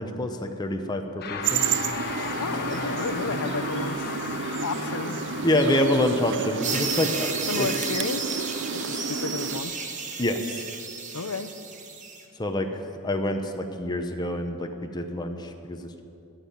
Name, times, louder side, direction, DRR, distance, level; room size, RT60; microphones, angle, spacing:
voice 1, 0.0-1.6 5.4-7.7 10.2-10.7 12.4-12.7 13.0-16.0, left 1 dB, 20° left, 4 dB, 0.7 m, -27 dB
sound 1, 1.2-10.7, left 4 dB, 45° left, 1.2 m, -36 dB
sound 2, 1.4-9.6, right 7 dB, 55° right, 0.5 m, -31 dB
voice 2, 2.4-4.2 4.6-5.2 7.5-8.3 8.7-9.8 11.1-11.5, left 4 dB, 70° left, 10 dB, 0.7 m, -32 dB
sound 3, 6.6-12.2, right 5 dB, 35° right, 1.2 m, -33 dB
14.0 x 7.3 x 9.4 m, 2.6 s
head